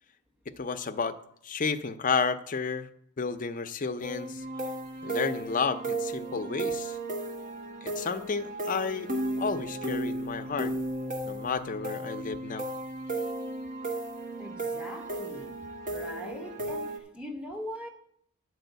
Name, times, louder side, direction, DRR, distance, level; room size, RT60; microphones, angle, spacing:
voice 1, 0.6-1.2 1.4-2.9 3.2-4.4 5.0-7.0 7.8-9.1 9.4-10.7 11.2-12.7, left 5 dB, 35° left, 0.5 m, -31 dB
sound 1, 4.0-17.0, right 1 dB, 35° right, 1.3 m, -35 dB
voice 2, 14.4-17.9, equal, 5° right, 1.0 m, -41 dB
10.0 x 4.8 x 7.9 m
head